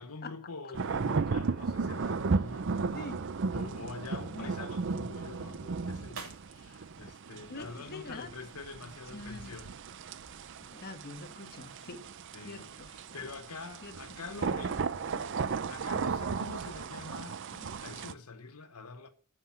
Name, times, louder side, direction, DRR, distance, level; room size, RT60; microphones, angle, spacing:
voice 1, 0.0-3.0 3.5-9.7 10.4-10.5 12.3-19.1, left 4 dB, 90° left, 1.1 m, -46 dB
sound 1, 0.7-18.1, right 4 dB, 55° right, 0.6 m, -35 dB
sound 2, 6.0-8.5, right 5 dB, 90° right, 2.6 m, -54 dB
voice 2, 7.5-8.3 8.8-9.6 10.8-12.0 12.4-12.9 13.8-14.2, left 2 dB, 45° left, 1.3 m, -44 dB
sound 3, 8.6-17.8, left 1 dB, 30° left, 2.2 m, -60 dB
9.7 x 5.9 x 7.4 m
head